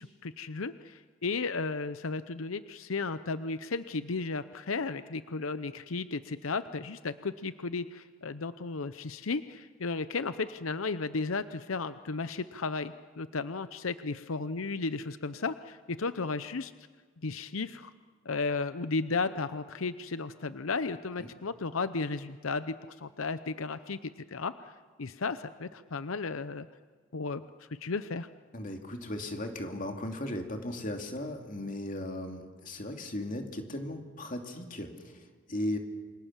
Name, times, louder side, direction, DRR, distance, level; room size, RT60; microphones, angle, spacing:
voice 1, 0.0-16.7 17.2-17.9 18.2-24.7 25.0-26.7 27.1-27.4 27.7-28.3, left 4 dB, 90° left, 12 dB, 0.8 m, -34 dB
voice 2, 28.5-35.8, left 1 dB, 40° left, 4 dB, 2.7 m, -37 dB
28.5 x 26.0 x 7.4 m, 1.5 s
head